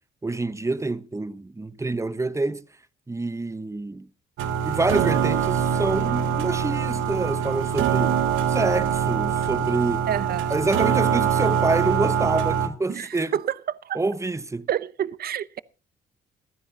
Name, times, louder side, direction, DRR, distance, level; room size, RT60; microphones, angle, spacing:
voice 1, 0.2-2.6 3.1-4.1 4.7-8.2 8.5-10.1 10.5-13.3 13.9-14.7, right 2 dB, 15° right, 0.9 m, -27 dB
sound 1, 4.4-12.7, right 8 dB, 85° right, 1.5 m, -23 dB
voice 2, 10.1-10.5 12.9-13.5 13.8-14.0 14.7-15.6, right 10 dB, 50° right, 0.6 m, -28 dB
27.5 x 9.8 x 2.8 m
cardioid pair, 90°, 20 cm